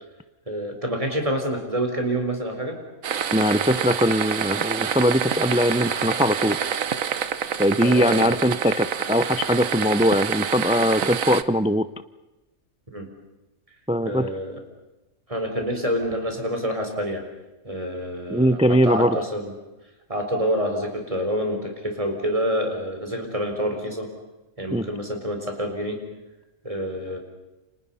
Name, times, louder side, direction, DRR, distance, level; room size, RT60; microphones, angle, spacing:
voice 1, 0.5-2.8 7.8-8.3 12.9-13.1 14.0-14.6 15.3-17.2 17.6-19.5 20.1-24.1 24.6-26.0 26.6-27.2, equal, 25° right, 4 dB, 4.5 m, -27 dB
sound 1, 3.0-11.4, right 8 dB, 85° right, 1.4 m, -27 dB
voice 2, 3.3-6.6 7.6-11.8 13.9-14.3 18.3-19.2 24.7-24.9, equal, 10° right, 13 dB, 0.4 m, -21 dB
29.5 x 26.5 x 5.7 m, 1.1 s
omnidirectional pair, 1.4 m